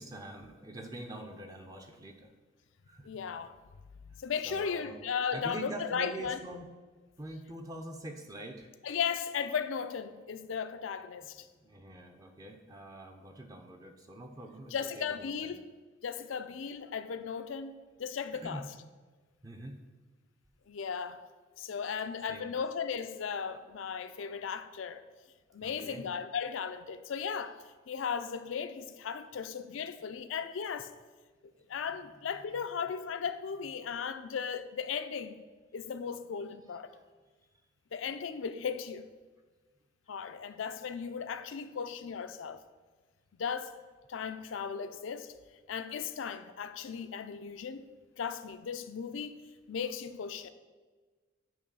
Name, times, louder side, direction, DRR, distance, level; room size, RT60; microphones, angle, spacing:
voice 1, 0.0-2.3 2.9-3.2 4.4-5.0 5.3-6.7 7.2-8.7 11.2-15.2 15.4-15.5 18.4-18.7 19.4-19.8 22.3-22.5 25.6-26.1 36.9-37.0, right 1 dB, 20° right, 0.5 m, -44 dB
voice 2, 3.0-3.6 4.2-6.4 8.8-11.5 14.7-15.7 16.0-18.6 20.7-21.2 21.6-25.0 25.5-27.6 27.9-30.9 31.7-35.4 35.7-36.9 37.9-39.0 40.1-42.6 43.4-43.7 44.1-45.3 45.7-47.9 48.2-49.4 49.7-50.5, left 6 dB, 75° left, 0.4 m, -36 dB
8.8 x 3.2 x 5.4 m
head